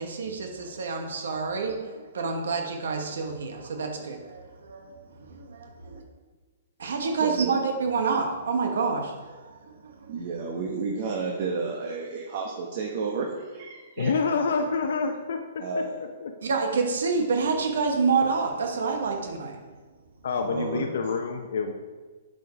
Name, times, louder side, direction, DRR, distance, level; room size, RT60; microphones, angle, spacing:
voice 1, 0.0-6.0 6.8-10.1 16.4-19.6, right 4 dB, 75° right, 3 dB, 1.0 m, -28 dB
voice 2, 7.2-7.5 10.1-14.1 15.6-16.0 19.1-19.2 20.3-20.9, right 4 dB, 55° right, 1 dB, 1.0 m, -31 dB
voice 3, 14.0-15.6 16.2-16.3 20.2-21.7, left 5 dB, 70° left, 5 dB, 0.7 m, -27 dB
7.9 x 5.2 x 4.8 m, 1.4 s
hypercardioid pair, 140°, 0 cm